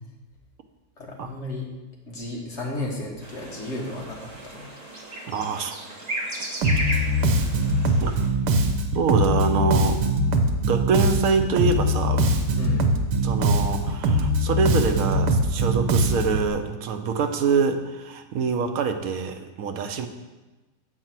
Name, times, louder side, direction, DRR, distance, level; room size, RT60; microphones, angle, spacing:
voice 1, 1.0-1.7 2.1-4.6 12.6-12.9, left 1 dB, 45° left, -2 dB, 1.8 m, -33 dB
sound 1, 3.2-8.3, right 1 dB, 25° right, 1.2 m, -34 dB
voice 2, 5.3-5.8 8.0-8.1 8.9-10.0 10.6-12.3 13.2-20.1, right 5 dB, 65° right, 7 dB, 1.0 m, -25 dB
Bass guitar, 6.6-16.5, right 1 dB, 85° right, 1.4 m, -22 dB
7.8 x 4.8 x 5.9 m, 1.1 s
omnidirectional pair, 1.8 m